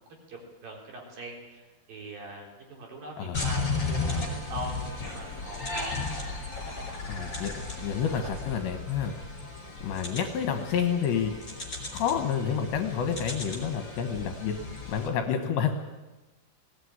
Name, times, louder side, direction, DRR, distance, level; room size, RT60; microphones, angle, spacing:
voice 1, 0.3-6.5 7.1-7.7 8.1-8.3, right 1 dB, 45° right, 0 dB, 5.3 m, -42 dB
sound 1, 3.3-15.1, left 3 dB, 15° left, 4.6 m, -35 dB
voice 2, 7.1-7.5 7.8-9.1 9.8-11.3 11.9-14.5 14.9-15.8, left 7 dB, 70° left, 6 dB, 3.1 m, -29 dB
20.0 x 18.0 x 9.7 m, 1.1 s
omnidirectional pair, 6.0 m